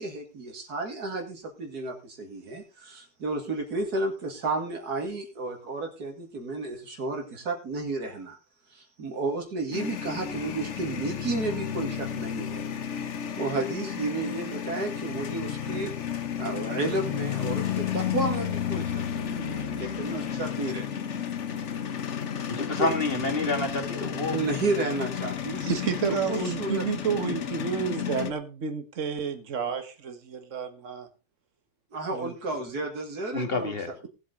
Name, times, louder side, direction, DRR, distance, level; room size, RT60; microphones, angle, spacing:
voice 1, 0.0-8.4 8.7-12.7 13.0-21.0 22.8-22.9 23.9-25.6 26.1-27.4 31.9-33.7, right 2 dB, 85° right, 2 dB, 2.7 m, -32 dB
sound 1, 9.7-28.3, left 9 dB, 55° left, 1.2 m, -32 dB
voice 2, 22.5-24.4 25.2-25.3 33.3-33.9, left 2 dB, 40° left, 5 dB, 2.5 m, -28 dB
voice 3, 25.6-31.1 32.1-32.3, right 6 dB, 55° right, 7 dB, 1.9 m, -30 dB
18.5 x 8.1 x 3.9 m, 0.30 s
omnidirectional pair, 1.6 m